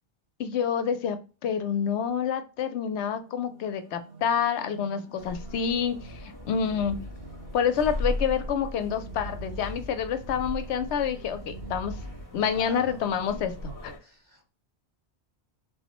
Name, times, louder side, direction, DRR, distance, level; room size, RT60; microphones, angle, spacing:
voice 1, 0.4-7.0 7.5-11.9 12.3-13.9, left 7 dB, 90° left, 0.9 m, -28 dB
sound 1, 2.5-13.7, right 3 dB, 45° right, 1.2 m, -51 dB
sound 2, 5.2-14.0, left 1 dB, 20° left, 0.7 m, -38 dB
sound 3, 6.4-12.2, right 1 dB, 65° right, 0.9 m, -43 dB
voice 2, 12.4-13.1 14.0-14.5, left 1 dB, 30° right, 1.0 m, -46 dB
3.7 x 2.0 x 2.9 m
omnidirectional pair, 1.1 m